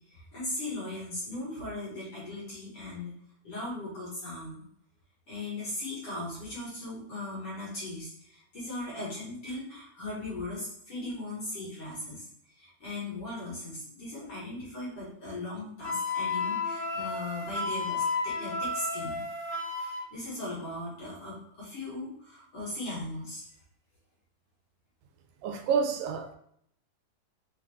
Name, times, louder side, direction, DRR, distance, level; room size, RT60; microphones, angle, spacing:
voice 1, 0.1-3.1 3.4-4.6 5.3-12.2 12.6-19.2 20.1-23.5, left 2 dB, 55° left, 1.8 m, -38 dB
Wind instrument woodwind instrument, 15.8-20.0, left 3 dB, 70° left, 1.2 m, -32 dB
voice 2, 25.4-26.3, right 6 dB, 85° right, 2.2 m, -28 dB
5.1 x 2.4 x 3.3 m
omnidirectional pair, 3.8 m